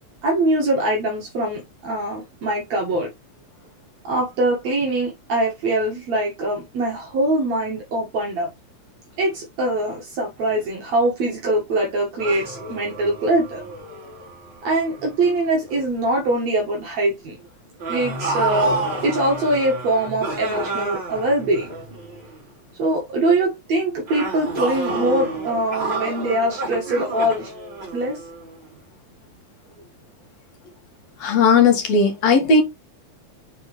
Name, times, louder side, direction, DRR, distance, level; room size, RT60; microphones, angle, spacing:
voice 1, 0.2-3.1 4.0-8.5 9.2-13.6 14.6-17.4 17.9-21.7 22.8-27.5 27.9-28.2, right 1 dB, 65° right, 3.1 m, -23 dB
sound 1, 12.2-15.3 15.7-16.0 17.8-22.4 24.1-28.6, right 2 dB, 35° right, 4.7 m, -29 dB
voice 2, 31.2-32.6, left 4 dB, 65° left, 3.0 m, -16 dB
7.5 x 4.3 x 3.3 m
omnidirectional pair, 3.4 m